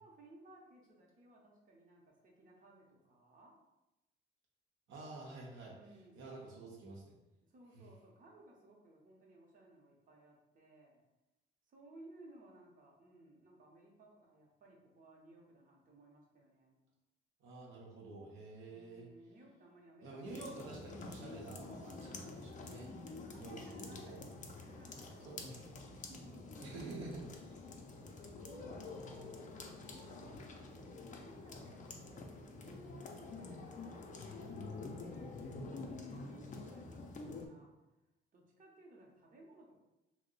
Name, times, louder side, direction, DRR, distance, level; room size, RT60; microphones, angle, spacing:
voice 1, 0.0-3.6 5.7-6.2 7.4-11.0 11.7-16.8 18.7-20.8 23.3-25.5 25.8-26.6 28.3-35.3 35.7-37.7 38.3-39.8, right 1 dB, 40° right, -1 dB, 0.8 m, -60 dB
voice 2, 4.9-5.8 6.2-7.2 7.8-7.9 17.4-19.1 20.0-22.9 23.3-24.1 25.2-25.6 26.6-27.7 29.0-29.3, right 2 dB, 80° right, -2 dB, 0.7 m, -49 dB
sound 1, 20.2-37.5, left 3 dB, 40° left, 0.4 m, -48 dB
2.6 x 2.1 x 3.9 m, 0.97 s
cardioid pair, 90°, 20 cm